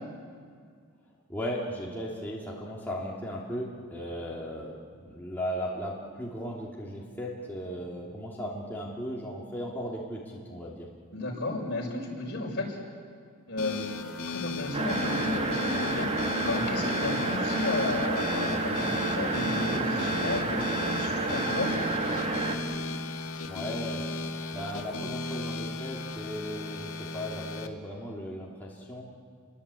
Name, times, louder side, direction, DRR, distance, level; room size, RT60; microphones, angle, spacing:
voice 1, 1.3-10.9 23.5-24.1 24.5-29.0, equal, 10° left, -5 dB, 3.0 m, -36 dB
voice 2, 11.1-12.8 13.5-13.9 14.2-16.1 16.4-21.7, left 2 dB, 55° left, 0 dB, 6.1 m, -33 dB
sound 1, 13.6-27.7, left 3 dB, 75° left, 2.1 m, -36 dB
sound 2, 14.7-22.6, right 2 dB, 30° right, 2.3 m, -29 dB
29.5 x 23.0 x 8.6 m, 2.1 s
head